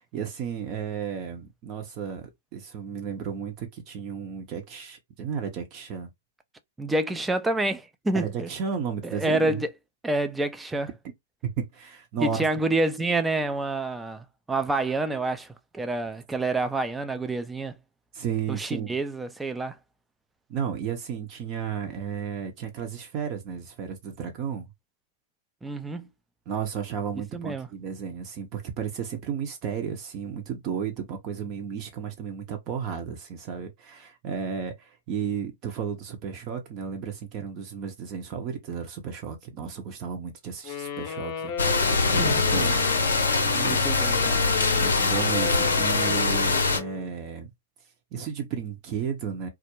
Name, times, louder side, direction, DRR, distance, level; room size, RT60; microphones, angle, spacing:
voice 1, 0.1-6.1 8.1-9.6 11.4-12.4 18.1-19.0 20.5-24.7 26.5-41.5 42.1-42.8 43.1-43.9 44.7-47.5 48.1-49.5, right 7 dB, 40° right, 0.7 m, -33 dB
voice 2, 6.8-8.5 9.0-9.7 10.0-10.9 12.2-17.8 18.5-19.8 25.6-26.1 27.3-27.7 42.2-42.4 43.3-44.4, right 2 dB, 10° right, 0.4 m, -28 dB
Wind instrument woodwind instrument, 40.6-47.1, left 8 dB, 35° left, 0.6 m, -34 dB
sound 1, 41.6-46.8, left 3 dB, 90° left, 0.6 m, -23 dB
2.3 x 2.0 x 2.9 m
hypercardioid pair, 120°, 0 cm